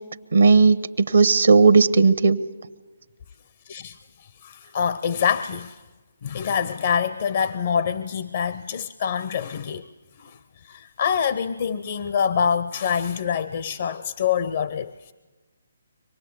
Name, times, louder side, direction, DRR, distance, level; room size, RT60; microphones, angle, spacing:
voice 1, 0.3-2.4, right 4 dB, 75° right, 1.0 m, -16 dB
voice 2, 3.7-4.0 4.4-5.8 6.2-9.9 10.2-10.4 10.6-15.1, left 7 dB, 50° left, 0.7 m, -25 dB
25.0 x 19.0 x 8.4 m
figure-of-eight pair, 140°, 0 cm